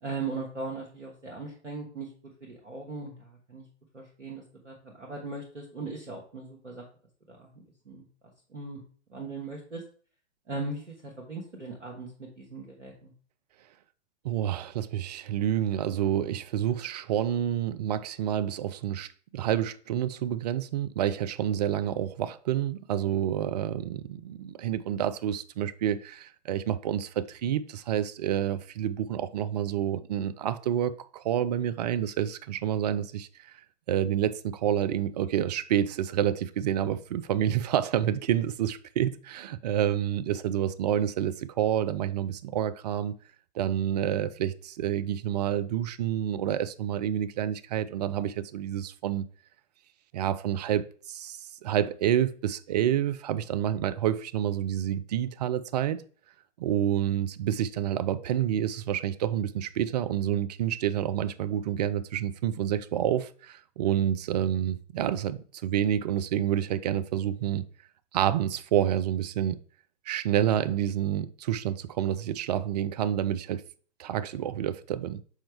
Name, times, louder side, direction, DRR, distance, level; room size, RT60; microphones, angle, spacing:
voice 1, 0.0-2.1 2.4-3.6 3.9-6.9 7.3-8.0 8.5-8.8 9.1-9.8 10.5-13.1, right 3 dB, 85° right, 1.4 m, -39 dB
voice 2, 14.2-33.5 33.9-43.1 43.5-49.3 50.1-56.0 56.6-67.6 68.1-69.6 70.1-73.6 74.0-75.2, right 10 dB, 40° right, 0.4 m, -28 dB
6.3 x 4.3 x 3.4 m
figure-of-eight pair, 110°, 35 cm